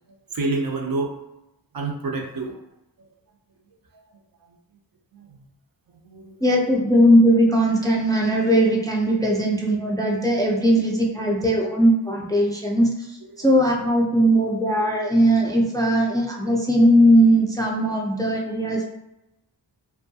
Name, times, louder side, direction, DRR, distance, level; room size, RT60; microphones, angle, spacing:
voice 1, 0.3-1.1 1.7-2.5 5.1-5.4 6.0-6.4 13.4-13.8, right 3 dB, 55° right, 1 dB, 0.5 m, -28 dB
voice 2, 6.4-12.9 13.4-18.8, equal, 10° left, -1 dB, 0.3 m, -19 dB
2.6 x 2.2 x 2.6 m, 0.91 s
wide cardioid pair, 65°, 44 cm